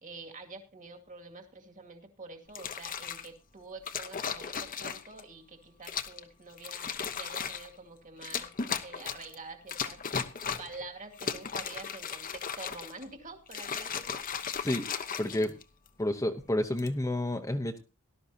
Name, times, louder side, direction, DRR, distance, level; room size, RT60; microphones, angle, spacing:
voice 1, 0.0-10.0 10.6-14.2, right 3 dB, 35° right, 4 dB, 2.2 m, -47 dB
sound 1, 2.5-3.3 3.9-5.2 5.8-6.2 6.6-7.7 8.2-9.3 9.7-10.8 11.1-13.0 13.5-15.9 16.6-16.9, left 6 dB, 40° left, 1.0 m, -36 dB
voice 2, 15.2-15.5 16.0-17.8, left 1 dB, 15° left, 4 dB, 0.9 m, -30 dB
18.0 x 12.5 x 2.8 m, 0.30 s
head